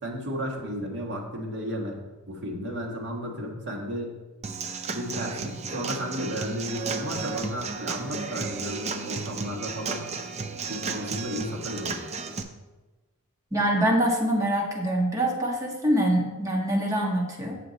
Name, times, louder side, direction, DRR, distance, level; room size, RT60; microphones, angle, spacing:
voice 1, 0.0-4.1 4.9-10.1 10.7-12.0, equal, 55° right, -1 dB, 1.7 m, -33 dB
Human voice / Acoustic guitar / Drum, 4.4-12.4, right 4 dB, 30° right, 0.6 m, -33 dB
voice 2, 13.5-17.6, right 1 dB, 15° right, -1 dB, 1.4 m, -24 dB
7.8 x 6.7 x 4.1 m, 1.2 s
head